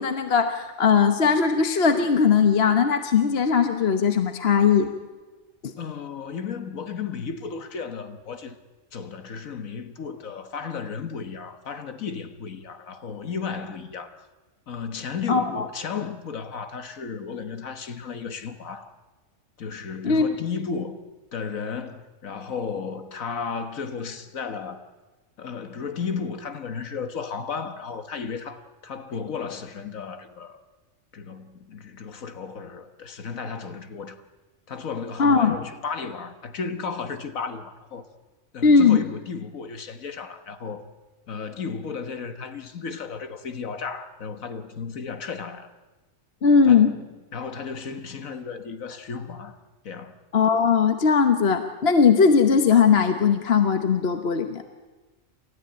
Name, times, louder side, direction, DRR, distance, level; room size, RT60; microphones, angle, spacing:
voice 1, 0.0-4.9 5.6-5.7 15.3-15.7 20.0-20.2 35.2-35.5 38.6-39.0 46.4-46.9 50.3-54.6, left 6 dB, 50° left, 1.3 m, -19 dB
voice 2, 5.8-8.6 8.9-14.3 14.7-18.9 19.6-21.0 21.3-24.9 25.4-30.6 31.1-34.2 34.7-38.1 38.5-40.9 41.3-45.7 46.7-47.1 47.3-49.6 49.8-50.1, left 5 dB, 85° left, 1.8 m, -34 dB
28.5 x 14.0 x 8.8 m
omnidirectional pair, 1.4 m